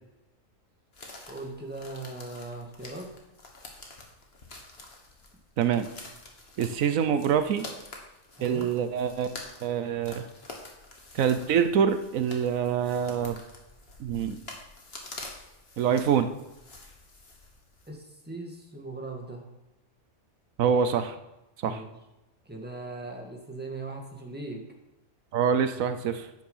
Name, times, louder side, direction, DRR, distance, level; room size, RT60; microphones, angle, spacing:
sound 1, 0.9-17.9, left 2 dB, 50° left, 1.9 m, -47 dB
voice 1, 1.3-3.1 8.4-8.7 17.9-19.5 21.7-22.0 22.5-24.6, right 2 dB, 5° right, 1 dB, 1.8 m, -39 dB
voice 2, 5.6-5.9 6.6-7.7 8.4-10.2 11.1-13.4 14.0-14.4 15.8-16.3 20.6-21.2 21.6-21.8 25.3-26.3, right 7 dB, 85° right, 10 dB, 1.2 m, -25 dB
10.5 x 8.7 x 5.6 m, 0.96 s
omnidirectional pair, 1.4 m